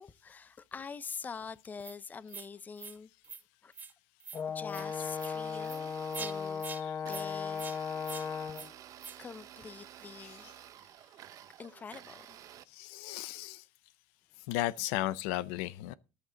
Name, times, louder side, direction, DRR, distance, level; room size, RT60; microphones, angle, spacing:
voice 1, 0.0-3.1 3.6-3.7 4.5-6.7 7.1-7.7 8.1-8.2 9.2-10.5 11.6-12.6, left 5 dB, 25° left, 0.7 m, -45 dB
sound 1, 1.8-2.0 2.3-2.5 2.8-3.0 3.2-3.4 3.7-3.9 4.2-4.4 4.7-4.8 5.2-5.3 5.6-5.8 6.1-6.3 6.6-6.8 7.1-7.3 7.6-7.8 8.0-8.3 8.5-8.7 9.0-9.2, right 5 dB, 25° right, 1.1 m, -44 dB
Brass instrument, 4.3-8.7, left 6 dB, 40° left, 1.0 m, -36 dB
Domestic sounds home sounds, 4.6-12.6, right 12 dB, 55° right, 0.8 m, -52 dB
voice 2, 10.2-10.5 12.7-13.6 14.5-15.9, left 15 dB, 85° left, 0.5 m, -35 dB
13.5 x 10.0 x 3.9 m
supercardioid pair, 105°, 7 cm